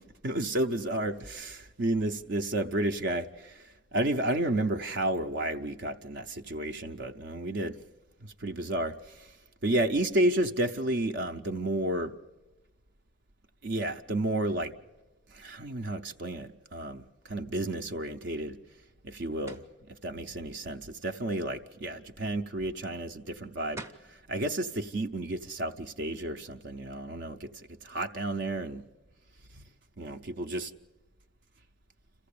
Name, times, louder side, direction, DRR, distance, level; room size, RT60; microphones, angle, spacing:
voice 1, 0.2-3.6 3.9-7.8 8.2-9.3 9.6-12.1 13.6-14.7 15.3-18.6 19.0-19.6 20.0-23.8 24.1-28.8 30.0-30.7, right 1 dB, 55° right, 0.7 m, -31 dB
sound 1, 19.5-19.8 23.4-23.5 23.8-24.1, right 2 dB, 15° right, 0.7 m, -43 dB
27.5 x 14.5 x 8.5 m
head